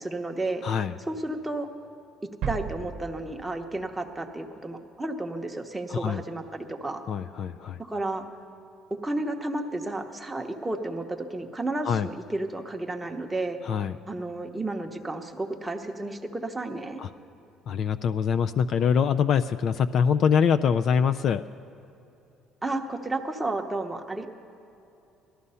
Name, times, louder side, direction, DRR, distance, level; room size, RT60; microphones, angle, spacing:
voice 1, 0.0-0.6 1.0-1.7 2.5-7.0 7.8-8.3 9.0-13.6 14.1-17.0 22.6-24.3, right 2 dB, 10° right, 3 dB, 0.9 m, -32 dB
voice 2, 0.6-0.9 5.9-6.2 7.1-7.8 11.9-12.1 13.6-13.9 17.0-17.1 17.7-21.4, left 7 dB, 45° left, 11 dB, 0.3 m, -24 dB
sound 1, 2.4-4.3 4.5-4.6, right 7 dB, 60° right, 0.8 m, -36 dB
17.5 x 13.0 x 5.5 m, 2.9 s
cardioid pair, 140°, 0 cm